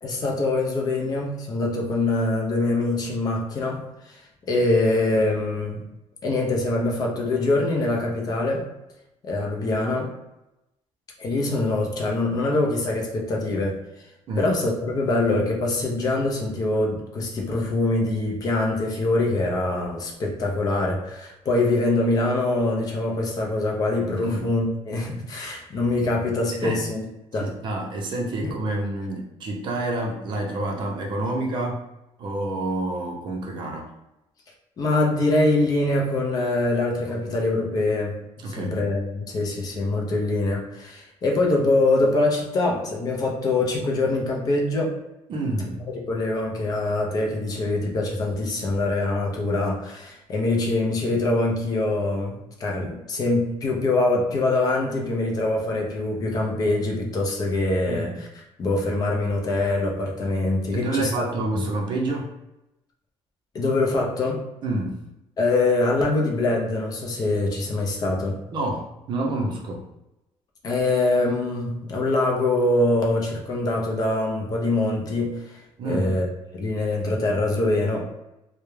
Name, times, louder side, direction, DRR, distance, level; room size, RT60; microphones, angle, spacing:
voice 1, 0.0-4.2 4.5-5.8 6.2-8.6 9.2-10.1 11.2-13.8 14.4-27.0 27.3-27.5 28.4-28.5 34.8-44.9 46.1-58.3 58.6-61.2 61.5-61.6 63.5-64.4 65.4-68.4 70.6-76.3 76.5-78.1, left 2 dB, 35° left, 0 dB, 0.4 m, -24 dB
voice 2, 27.4-31.8 32.2-33.9 38.4-38.7 45.3-45.8 57.8-58.1 60.7-62.3 64.6-65.0 68.5-69.8 75.8-76.1, right 2 dB, 45° right, 0 dB, 0.5 m, -28 dB
2.2 x 2.0 x 3.0 m, 0.92 s
cardioid pair, 170°, 11 cm